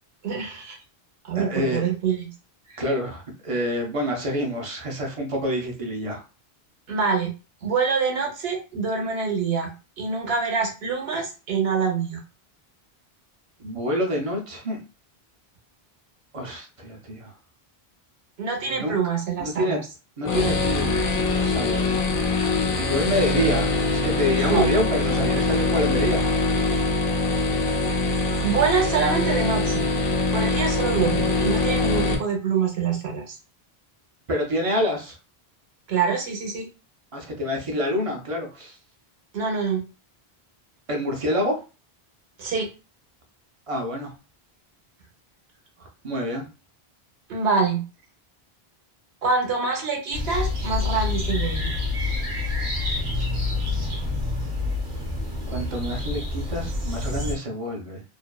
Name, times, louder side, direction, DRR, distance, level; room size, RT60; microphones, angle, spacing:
voice 1, 0.2-0.8 1.2-2.3 2.7-2.8 6.9-7.3 7.6-9.7 10.0-12.2 18.4-19.8 24.5-24.7 28.4-29.8 30.3-33.4 35.9-36.7 39.3-39.8 42.4-42.7 47.3-47.8 49.2-51.7, right 5 dB, 80° right, 1 dB, 1.0 m, -25 dB
voice 2, 1.3-1.8 2.8-6.2 13.6-14.8 16.3-17.3 18.6-19.0 19.4-19.8 20.2-22.0 22.8-26.3 34.3-35.2 37.1-38.8 40.9-41.6 43.7-44.1 45.8-46.5 55.5-58.0, equal, 40° right, 1 dB, 0.5 m, -27 dB
sound 1, 20.2-32.2, left 3 dB, 85° left, 0.8 m, -23 dB
sound 2, 50.1-57.3, left 3 dB, 55° right, 0.9 m, -27 dB
2.5 x 2.2 x 2.2 m, 0.31 s
omnidirectional pair, 1.0 m